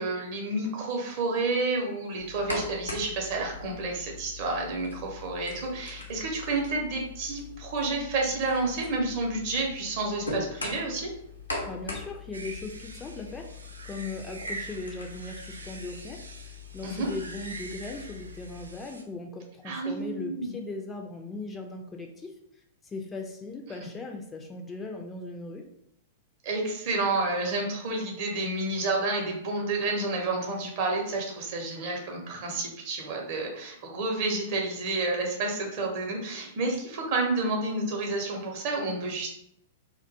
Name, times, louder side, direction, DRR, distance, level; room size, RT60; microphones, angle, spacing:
voice 1, 0.0-11.1 16.8-17.1 19.6-20.5 26.4-39.3, right 2 dB, 45° right, 1 dB, 0.6 m, -30 dB
sound 1, 2.2-18.7, left 3 dB, 85° left, 0.6 m, -41 dB
voice 2, 11.7-13.5 13.9-16.2 16.7-22.3 22.8-25.6, left 3 dB, 15° left, 2 dB, 0.3 m, -38 dB
sound 2, 12.3-19.0, right 3 dB, 80° right, 0.3 m, -44 dB
2.4 x 2.2 x 2.6 m, 0.74 s
figure-of-eight pair, 100°, 0 cm